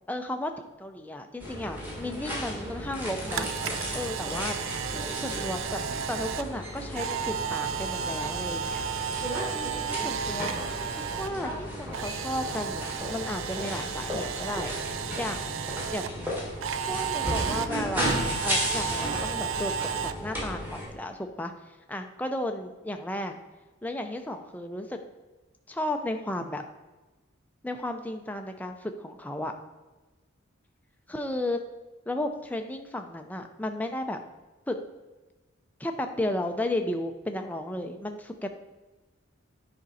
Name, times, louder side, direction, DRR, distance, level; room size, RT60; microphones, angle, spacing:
voice 1, 0.1-3.5 3.9-4.6 5.2-5.8 6.1-8.8 9.5-15.4 15.9-16.4 16.9-23.4 23.8-25.0 25.7-26.6 27.6-29.5 31.1-31.6 32.1-34.2 34.7-34.8 35.8-38.5, left 1 dB, 10° left, 4 dB, 0.5 m, -34 dB
sound 1, 1.4-20.9, equal, 10° right, 1.5 m, -34 dB
Camera, 2.9-11.3 11.6-16.1 16.6-20.1, right 7 dB, 75° right, 0.4 m, -33 dB
8.9 x 5.2 x 4.1 m, 1.2 s
head